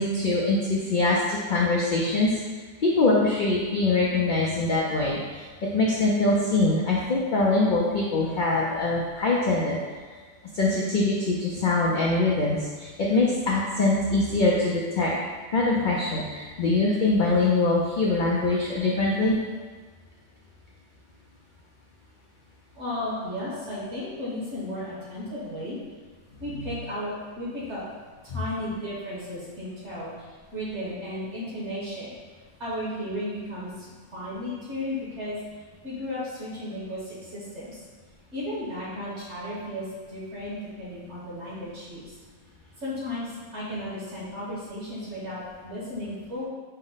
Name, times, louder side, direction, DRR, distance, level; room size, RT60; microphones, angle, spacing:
voice 1, 0.0-2.4 2.8-9.8 10.5-15.1 15.5-19.4 28.3-28.4, left 2 dB, 65° left, -4 dB, 0.4 m, -23 dB
voice 2, 22.7-25.8 26.4-27.8 28.2-32.2 32.6-35.4 35.8-37.8 38.3-42.1 42.8-46.5, left 1 dB, 55° right, -8 dB, 1.5 m, -34 dB
5.4 x 2.1 x 3.9 m, 1.5 s
omnidirectional pair, 1.5 m